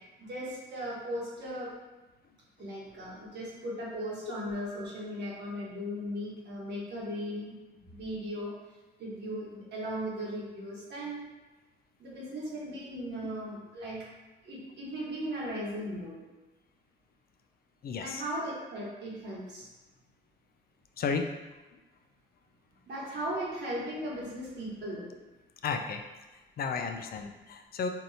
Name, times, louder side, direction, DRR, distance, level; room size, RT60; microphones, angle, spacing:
voice 1, 0.2-1.7 2.6-7.6 7.9-8.5 9.0-11.2 12.0-14.1 14.4-16.2 18.0-19.7 22.9-25.1, equal, 60° right, -5 dB, 1.4 m, -37 dB
voice 2, 17.8-18.2 21.0-21.3 25.6-26.0 26.6-27.9, left 5 dB, 50° left, 5 dB, 0.4 m, -33 dB
4.5 x 2.7 x 2.7 m, 1.1 s
cardioid pair, 90°, 20 cm